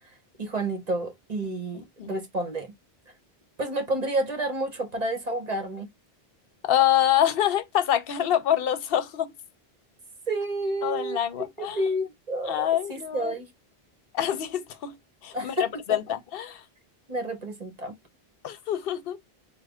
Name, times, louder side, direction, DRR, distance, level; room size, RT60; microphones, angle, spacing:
voice 1, 0.4-2.7 3.6-5.9 10.3-13.5 15.3-16.0 17.1-18.0, right 1 dB, 45° right, 0.9 m, -30 dB
voice 2, 6.6-9.3 10.8-11.8 12.5-13.3 14.1-15.0 15.2-15.5 15.9-16.6 18.4-19.2, left 11 dB, 65° left, 0.8 m, -25 dB
3.2 x 2.1 x 3.5 m
omnidirectional pair, 1.1 m